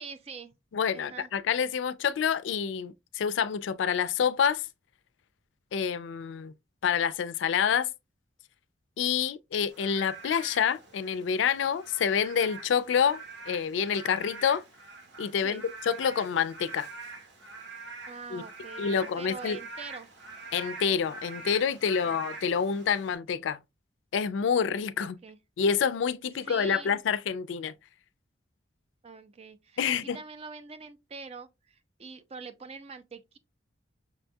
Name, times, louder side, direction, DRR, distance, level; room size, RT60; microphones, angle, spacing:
voice 1, 0.0-0.5 0.9-1.3 15.4-15.7 18.1-20.1 22.0-22.2 25.0-25.4 26.3-27.0 29.0-33.4, right 5 dB, 35° right, 0.4 m, -44 dB
voice 2, 0.7-4.6 5.7-6.5 6.8-7.9 9.0-14.6 15.2-16.9 18.3-18.4 18.8-19.6 20.5-23.6 24.1-25.2 25.6-27.7 29.8-30.2, left 7 dB, 75° left, 0.3 m, -27 dB
Frog / Rain, 9.7-23.2, right 3 dB, 65° right, 0.9 m, -45 dB
5.9 x 2.3 x 2.6 m
head